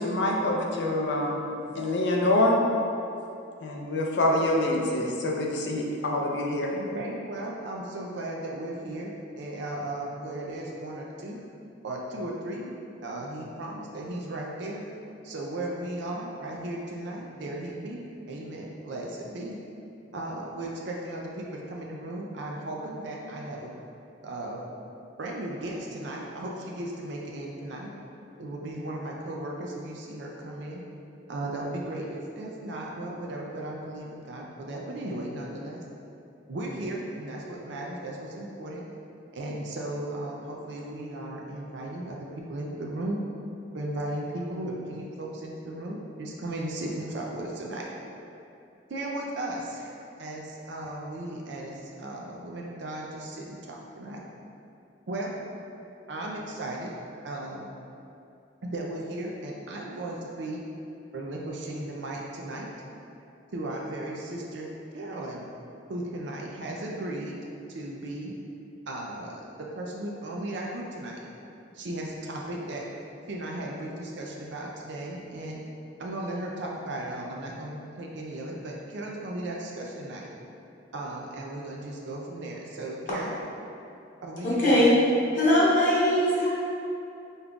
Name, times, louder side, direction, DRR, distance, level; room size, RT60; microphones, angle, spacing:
voice 1, 0.0-1.5 1.7-2.6 3.6-6.7, left 1 dB, 60° left, 0 dB, 0.5 m, -25 dB
voice 2, 6.7-11.4 11.8-12.7 13.0-14.8 15.2-19.6 20.1-23.7 24.2-24.6 25.2-27.9 28.4-30.8 31.3-35.8 36.5-38.8 39.3-43.2 43.7-47.9 48.9-54.2 55.1-55.4 56.1-56.9 57.2-57.7 58.6-60.6 61.1-62.7 63.5-65.4 65.9-67.4 67.7-68.3 68.9-69.4 69.7-71.2 71.7-72.8 73.3-75.6 76.0-80.3 80.9-83.4 84.2-85.0, right 1 dB, 65° right, -2 dB, 0.5 m, -36 dB
voice 3, 84.4-84.9 85.3-86.5, left 1 dB, 45° left, -8 dB, 0.9 m, -21 dB
5.3 x 3.6 x 2.3 m, 2.7 s
head